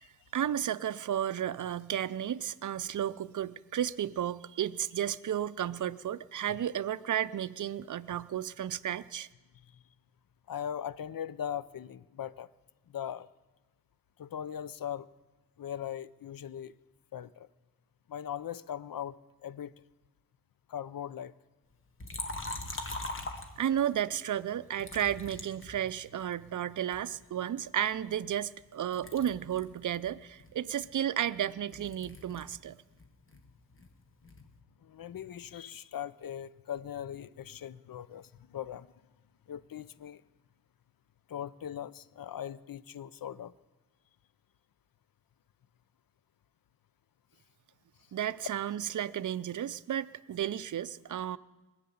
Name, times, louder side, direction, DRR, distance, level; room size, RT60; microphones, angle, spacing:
voice 1, 0.3-9.3 23.6-32.8 48.1-51.4, right 10 dB, 50° right, 16 dB, 0.5 m, -33 dB
voice 2, 10.5-12.5 12.9-13.3 14.2-15.1 15.6-16.8 17.1-17.5 18.1-19.7 20.7-21.3 34.8-38.9 39.5-40.2 41.3-43.5, left 9 dB, 60° left, 17 dB, 0.6 m, -40 dB
Liquid, 22.0-24.0 24.8-26.3 26.9-28.7 28.9-32.6 32.9-34.5, left 2 dB, 35° left, 1.4 m, -43 dB
21.5 x 8.6 x 7.0 m, 1.2 s
wide cardioid pair, 115°, 38 cm